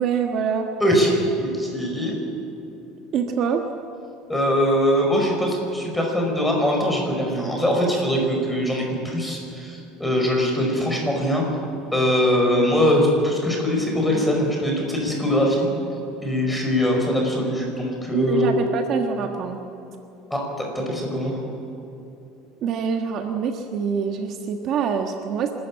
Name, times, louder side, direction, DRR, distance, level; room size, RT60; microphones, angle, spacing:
voice 1, 0.0-0.7 3.1-3.6 18.1-19.6 22.6-25.5, right 7 dB, 45° right, 4 dB, 1.5 m, -25 dB
voice 2, 0.8-2.2 4.3-11.5 11.9-15.7 16.2-18.5 20.3-21.4, equal, 5° left, 0 dB, 5.3 m, -22 dB
27.5 x 13.5 x 8.9 m, 2.9 s
cardioid pair, 140°, 0 cm